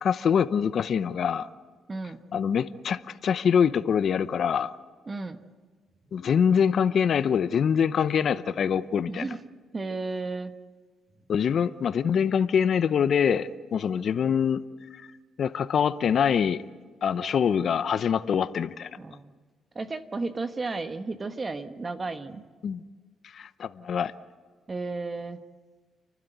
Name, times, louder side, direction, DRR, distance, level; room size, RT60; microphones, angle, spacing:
voice 1, 0.0-1.5 2.3-4.7 6.1-9.2 11.3-14.6 14.9-15.1 15.4-16.6 17.0-18.9 22.6-22.8 23.2-24.1, left 7 dB, 55° left, 13 dB, 0.8 m, -24 dB
voice 2, 1.9-2.2 5.1-5.4 9.0-9.4 9.7-10.5 19.0-19.3 19.7-22.4 24.7-25.4, right 3 dB, 30° right, 9 dB, 1.2 m, -33 dB
30.0 x 12.0 x 9.2 m, 1.4 s
cardioid pair, 90°, 0 cm